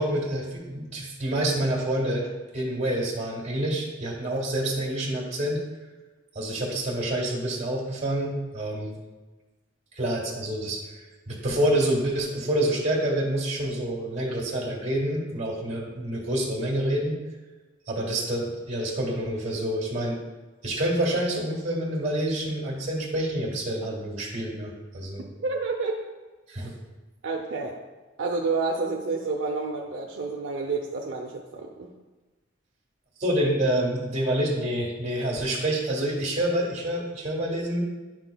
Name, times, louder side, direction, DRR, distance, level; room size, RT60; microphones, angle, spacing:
voice 1, 0.0-2.3 2.5-5.6 6.4-9.0 9.9-10.9 11.3-17.2 17.9-20.2 20.6-25.3 26.5-26.7 33.2-37.8, right 1 dB, 35° right, -2 dB, 1.7 m, -27 dB
voice 2, 25.4-26.0 27.2-27.8 28.2-31.9, right 3 dB, 70° right, -1 dB, 0.6 m, -29 dB
10.0 x 6.0 x 2.2 m, 1.2 s
head